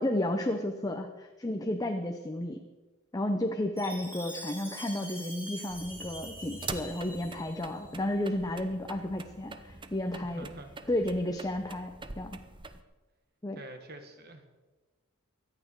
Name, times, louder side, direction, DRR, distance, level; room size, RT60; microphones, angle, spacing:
voice 1, 0.0-2.6 3.1-10.5 10.9-12.4 13.4-13.6, left 1 dB, 15° left, 4 dB, 0.8 m, -32 dB
Chime, 3.8-7.9, equal, 10° right, 3.9 m, -44 dB
sound 1, 5.7-12.8, right 3 dB, 25° right, 0.8 m, -45 dB
voice 2, 10.2-10.7 13.5-14.5, right 2 dB, 50° right, 6 dB, 1.8 m, -46 dB
24.0 x 8.9 x 4.7 m, 1.2 s
head